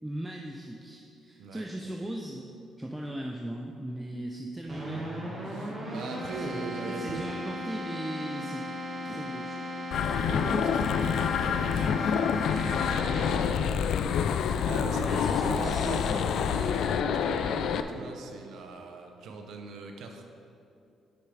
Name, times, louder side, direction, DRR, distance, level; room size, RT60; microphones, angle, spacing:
voice 1, 0.0-2.4 2.8-5.1 6.4-8.7 9.0-9.6 15.0-16.2 17.5-17.6, right 1 dB, 5° right, -1 dB, 0.6 m, -38 dB
Keyboard (musical), 4.7-13.7, left 1 dB, 30° right, 1.7 m, -37 dB
voice 2, 5.5-7.3 10.1-12.3 12.6-20.2, right 4 dB, 75° right, 4 dB, 0.8 m, -41 dB
sound 1, 9.9-17.8, left 7 dB, 75° left, 0.3 m, -27 dB
6.5 x 5.7 x 4.9 m, 2.7 s
cardioid pair, 90°, 0 cm